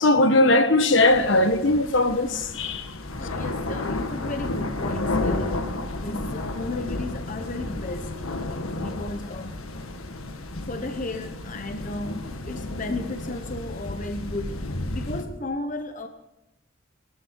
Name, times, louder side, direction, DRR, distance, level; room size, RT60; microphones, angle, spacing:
voice 1, 0.0-2.9, left 2 dB, 60° left, 1.3 m, -19 dB
sound 1, 1.1-15.2, left 2 dB, 85° left, 1.7 m, -32 dB
voice 2, 3.2-5.7 6.0-9.6 10.5-14.6 14.9-16.1, left 2 dB, 40° left, 1.0 m, -34 dB
21.5 x 14.0 x 4.7 m
head